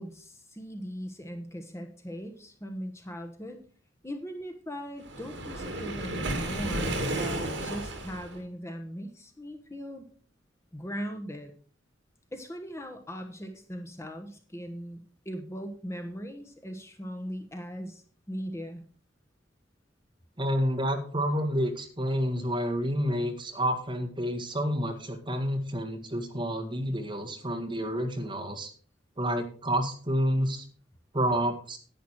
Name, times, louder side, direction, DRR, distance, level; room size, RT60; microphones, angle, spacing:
voice 1, 0.0-3.6 4.0-10.0 10.7-11.5 12.3-15.0 15.2-18.8, equal, 15° left, 5 dB, 1.2 m, -39 dB
Waves surf, 5.0-8.4, right 1 dB, 70° right, 2.6 m, -33 dB
voice 2, 20.4-28.7 29.2-30.7 31.1-31.8, equal, 25° right, 3 dB, 1.8 m, -29 dB
10.5 x 9.3 x 4.6 m, 0.43 s
head